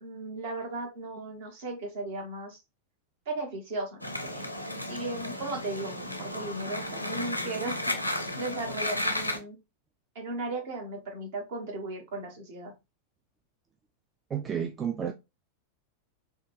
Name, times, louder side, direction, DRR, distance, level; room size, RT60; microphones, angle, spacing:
voice 1, 0.0-2.6 3.3-4.4 4.9-9.6 10.1-12.7, right 2 dB, 55° right, 1.2 m, -36 dB
sound 1, 4.0-9.4, left 1 dB, 90° left, 0.5 m, -33 dB
voice 2, 14.3-15.1, right 8 dB, 20° right, 0.3 m, -31 dB
3.5 x 2.3 x 3.0 m
figure-of-eight pair, 90°, 0 cm